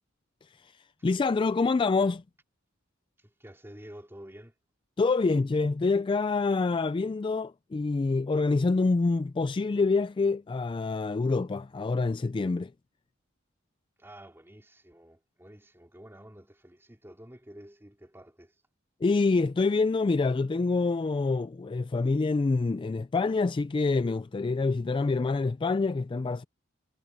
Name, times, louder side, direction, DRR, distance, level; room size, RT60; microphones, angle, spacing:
voice 1, 1.0-2.2 5.0-12.7 19.0-26.4, left 3 dB, 25° left, 0.3 m, -26 dB
voice 2, 3.2-4.5 14.0-18.6, equal, 10° right, 3.6 m, -50 dB
head